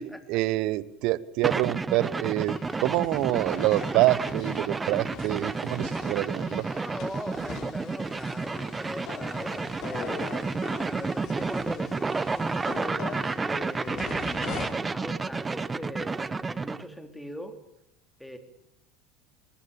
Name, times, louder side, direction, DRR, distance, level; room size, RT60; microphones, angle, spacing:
voice 1, 0.0-6.7, right 17 dB, 60° right, 20 dB, 1.0 m, -26 dB
sound 1, 1.4-16.8, right 4 dB, 20° right, 0.8 m, -31 dB
sound 2, 2.4-14.7, left 7 dB, 50° left, 4.1 m, -42 dB
voice 2, 6.7-10.3 10.8-17.6 18.2-18.4, equal, 5° left, 6 dB, 3.5 m, -40 dB
22.0 x 20.0 x 8.7 m, 0.79 s
hypercardioid pair, 75°, 0 cm